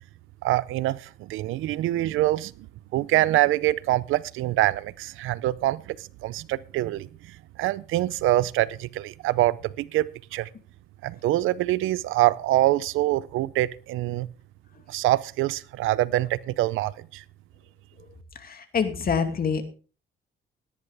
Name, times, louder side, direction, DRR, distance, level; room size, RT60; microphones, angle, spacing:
voice 1, 0.4-2.5 2.9-10.5 11.0-14.3 14.9-17.2, right 16 dB, 90° right, 20 dB, 0.6 m, -25 dB
voice 2, 18.4-19.6, left 6 dB, 50° left, 7 dB, 2.4 m, -26 dB
17.5 x 10.0 x 3.5 m, 0.38 s
cardioid pair, 90°, 20 cm